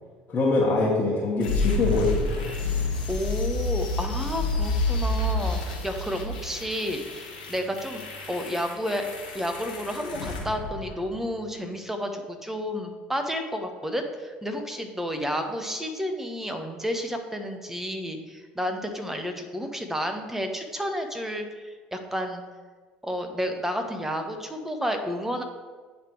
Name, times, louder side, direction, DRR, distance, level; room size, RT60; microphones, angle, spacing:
voice 1, 0.3-2.3, left 3 dB, 35° left, -6 dB, 1.5 m, -24 dB
sound 1, 1.4-11.4, left 2 dB, 80° left, 1.2 m, -29 dB
voice 2, 3.1-9.1 9.3-22.4 23.0-25.4, equal, 5° right, 5 dB, 1.0 m, -31 dB
9.2 x 3.4 x 4.6 m, 1.4 s
hypercardioid pair, 60°, 5 cm